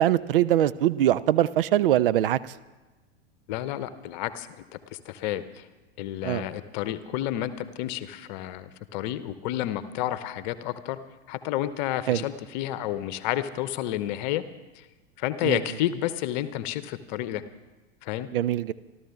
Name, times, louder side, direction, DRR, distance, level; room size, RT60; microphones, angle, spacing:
voice 1, 0.0-2.5 6.2-6.5 12.1-12.2 15.4-15.6 18.3-18.7, right 12 dB, 55° right, 18 dB, 0.6 m, -22 dB
voice 2, 3.5-4.6 5.1-5.6 6.0-11.0 11.3-14.4 15.2-17.4 18.0-18.3, left 13 dB, 45° left, 13 dB, 0.9 m, -30 dB
27.0 x 12.5 x 3.6 m, 1.2 s
figure-of-eight pair, 90°, 33 cm